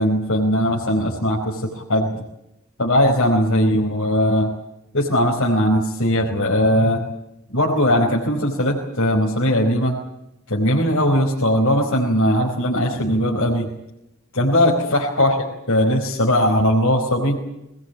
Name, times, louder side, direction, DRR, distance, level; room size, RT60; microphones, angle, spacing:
voice 1, 0.0-2.2 2.8-4.5 4.9-7.0 7.5-9.9 10.5-13.7 14.3-17.4, equal, 65° left, -3 dB, 4.8 m, -19 dB
23.0 x 20.0 x 9.1 m, 0.87 s
head